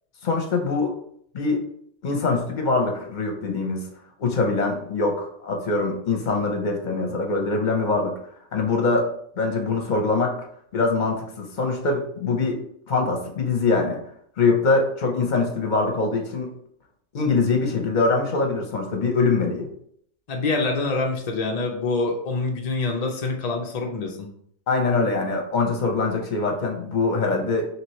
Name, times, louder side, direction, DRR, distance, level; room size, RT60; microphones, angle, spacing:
voice 1, 0.2-0.9 1.3-1.6 2.0-3.9 4.2-8.2 8.5-9.1 9.4-10.4 10.7-12.6 12.9-14.0 14.4-16.5 17.1-19.7 24.7-27.7, left 3 dB, 45° left, 2 dB, 0.7 m, -23 dB
voice 2, 20.3-24.3, left 3 dB, 70° left, 2 dB, 0.3 m, -26 dB
4.3 x 2.9 x 3.0 m, 0.67 s
omnidirectional pair, 1.4 m